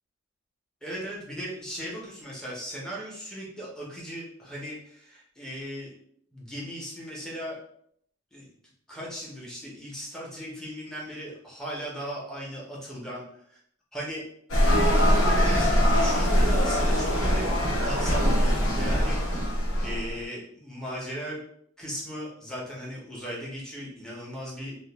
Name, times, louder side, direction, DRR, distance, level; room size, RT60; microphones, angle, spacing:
voice 1, 0.8-5.9 6.3-7.6 8.3-8.5 8.9-13.2 13.9-14.2 14.6-17.5 17.8-21.4 21.8-24.8, equal, 5° left, -6 dB, 0.6 m, -37 dB
sound 1, 14.5-20.1, equal, 85° left, 0.8 m, -22 dB
2.4 x 2.0 x 2.9 m, 0.68 s
head